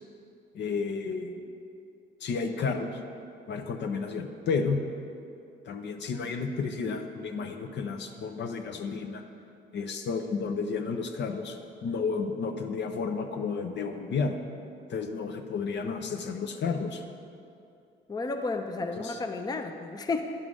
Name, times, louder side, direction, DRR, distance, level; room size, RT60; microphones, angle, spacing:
voice 1, 0.5-1.4 2.2-3.0 3.5-4.8 5.7-9.2 9.7-11.6 11.8-14.3 14.9-17.0 19.0-19.2, left 5 dB, 60° left, 5 dB, 0.7 m, -32 dB
voice 2, 18.1-20.2, left 3 dB, 20° left, 6 dB, 0.5 m, -32 dB
9.8 x 3.8 x 6.2 m, 2.5 s
cardioid pair, 90°, 20 cm